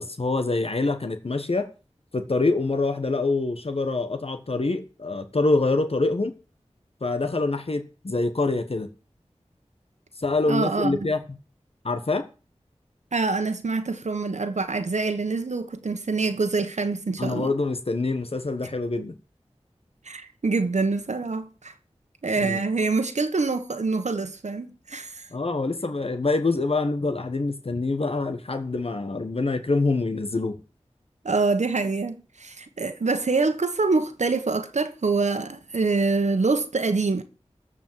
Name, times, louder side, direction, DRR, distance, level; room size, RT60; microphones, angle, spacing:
voice 1, 0.0-1.7 2.1-6.3 7.0-8.9 10.2-11.2 11.8-12.3 17.2-19.2 22.4-22.6 25.3-30.6, left 3 dB, 55° left, 1.3 m, -25 dB
voice 2, 10.5-11.1 13.1-17.5 18.9-19.0 20.0-21.7 22.2-25.3 31.2-37.2, right 3 dB, 85° right, 1.3 m, -25 dB
14.0 x 5.1 x 7.5 m
wide cardioid pair, 60°, 12 cm